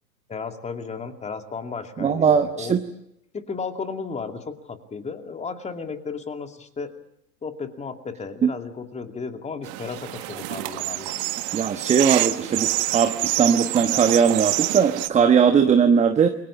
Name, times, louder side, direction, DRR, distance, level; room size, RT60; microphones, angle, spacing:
voice 1, 0.3-2.8 3.3-6.9 7.4-11.1, left 5 dB, 15° left, 6 dB, 2.4 m, -34 dB
voice 2, 2.0-2.8 8.4-8.5 11.5-16.3, right 7 dB, 15° right, 8 dB, 1.2 m, -19 dB
sound 1, 9.6-15.1, right 18 dB, 40° right, 1.6 m, -27 dB
29.0 x 23.0 x 7.3 m, 0.80 s
figure-of-eight pair, 105°, 49 cm